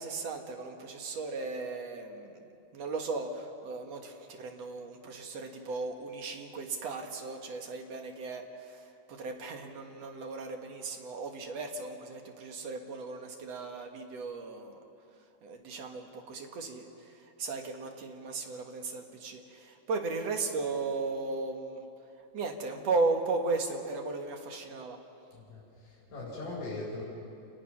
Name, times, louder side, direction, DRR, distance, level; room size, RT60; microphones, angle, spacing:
voice 1, 0.0-14.8 15.4-21.8 22.2-25.0, right 3 dB, 60° right, 3 dB, 2.9 m, -36 dB
voice 2, 25.3-27.0, left 2 dB, 50° left, -6 dB, 5.6 m, -40 dB
28.0 x 20.0 x 6.0 m, 2.6 s
omnidirectional pair, 3.3 m